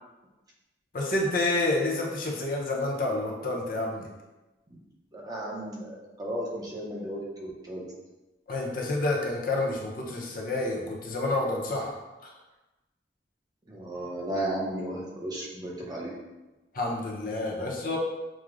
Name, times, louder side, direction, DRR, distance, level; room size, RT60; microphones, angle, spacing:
voice 1, 0.9-4.1 8.5-11.9 12.2-12.3 16.7-18.0, left 2 dB, 50° left, -2 dB, 0.6 m, -29 dB
voice 2, 5.1-7.9 13.7-16.1, right 1 dB, 20° right, -3 dB, 0.6 m, -34 dB
6.0 x 2.1 x 2.4 m, 1.1 s
head